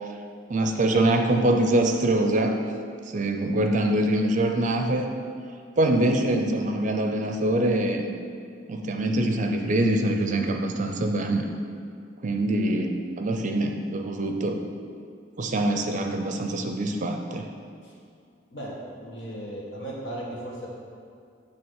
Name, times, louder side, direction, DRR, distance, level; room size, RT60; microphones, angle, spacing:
voice 1, 0.5-2.6 3.0-5.1 5.8-8.1 8.7-11.4 12.2-14.6 15.4-17.5, right 1 dB, 40° right, 4 dB, 0.5 m, -24 dB
voice 2, 19.0-20.7, right 1 dB, 80° left, -5 dB, 1.7 m, -36 dB
9.3 x 3.3 x 6.3 m, 2.3 s
head